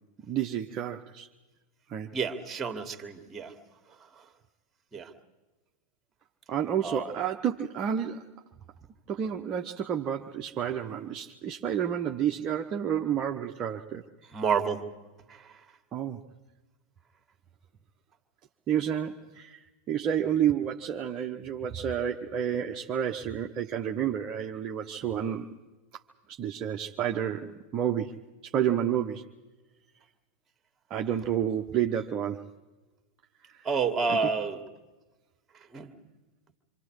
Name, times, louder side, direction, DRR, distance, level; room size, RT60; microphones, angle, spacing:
voice 1, 0.3-1.3 1.9-2.1 6.5-8.2 9.1-14.0 15.9-16.2 18.7-19.6 19.9-25.6 25.9-26.0 26.3-29.2 30.9-32.4 33.5-33.7 34.1-34.2, right 9 dB, 30° right, 1 dB, 1.0 m, -30 dB
voice 2, 2.1-3.5 4.9-5.1 6.8-7.0 14.3-14.8 15.3-15.5 33.6-34.6 35.7-35.9, right 5 dB, 15° right, 7 dB, 2.2 m, -29 dB
27.0 x 25.5 x 4.9 m, 1.2 s
figure-of-eight pair, 90°, 0 cm